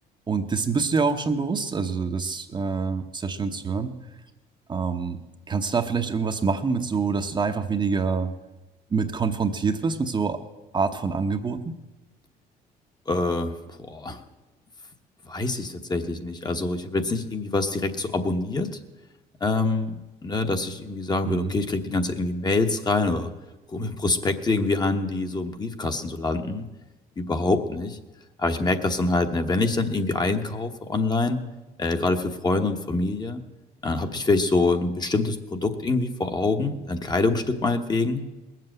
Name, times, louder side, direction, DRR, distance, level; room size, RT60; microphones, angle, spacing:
voice 1, 0.3-3.9 4.7-5.2 5.5-8.3 8.9-10.4 10.7-11.8 21.2-21.5, right 5 dB, 25° right, 6 dB, 0.9 m, -26 dB
voice 2, 13.1-14.2 15.2-18.8 19.4-19.9 20.2-23.3 23.7-26.7 27.2-28.0 28.4-31.4 31.8-33.4 33.8-38.2, left 3 dB, 25° left, 6 dB, 1.1 m, -25 dB
19.5 x 7.7 x 7.9 m, 1.1 s
cardioid pair, 110°, 17 cm